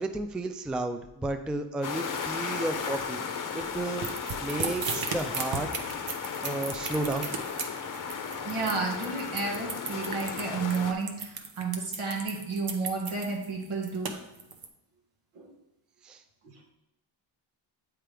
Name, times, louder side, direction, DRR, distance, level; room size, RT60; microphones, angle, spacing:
voice 1, 0.0-4.1 4.4-5.9 6.4-7.3 16.0-16.2, right 2 dB, ahead, 7 dB, 0.3 m, -33 dB
sound 1, 1.8-10.9, left 6 dB, 40° left, 0.8 m, -35 dB
sound 2, 4.0-14.7, right 5 dB, 45° right, 0.9 m, -35 dB
voice 2, 8.4-14.1 15.3-15.5 16.4-16.5, right 4 dB, 75° right, 0 dB, 1.7 m, -32 dB
7.4 x 4.7 x 3.4 m, 0.87 s
cardioid pair, 65°, 50 cm